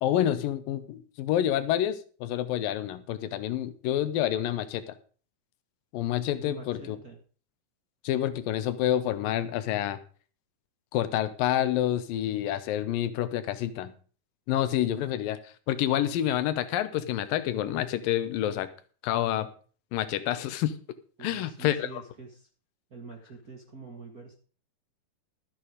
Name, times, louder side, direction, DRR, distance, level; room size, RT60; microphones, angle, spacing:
voice 1, 0.0-5.0 5.9-7.0 8.0-10.0 10.9-13.9 14.5-18.7 19.0-19.5 19.9-20.7 21.2-22.0, left 12 dB, 80° left, 13 dB, 2.6 m, -28 dB
voice 2, 6.4-7.2 21.2-22.5 22.9-24.4, right 4 dB, 35° right, 2 dB, 1.7 m, -45 dB
13.0 x 9.1 x 5.1 m, 0.41 s
omnidirectional pair, 4.0 m